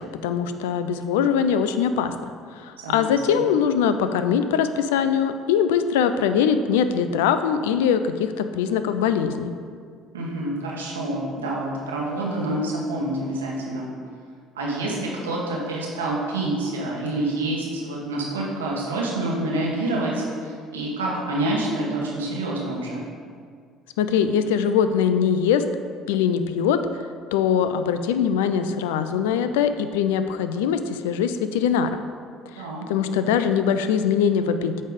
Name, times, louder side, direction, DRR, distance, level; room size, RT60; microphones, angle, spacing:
voice 1, 0.0-9.5 24.0-25.6 26.1-26.8 27.3-31.9 32.6-34.8, left 7 dB, 80° left, 10 dB, 0.3 m, -22 dB
voice 2, 2.8-3.4 10.1-13.9 14.5-23.0 32.6-32.8, right 1 dB, 90° right, -4 dB, 1.2 m, -27 dB
8.2 x 3.3 x 5.0 m, 2.1 s
hypercardioid pair, 60°, 0 cm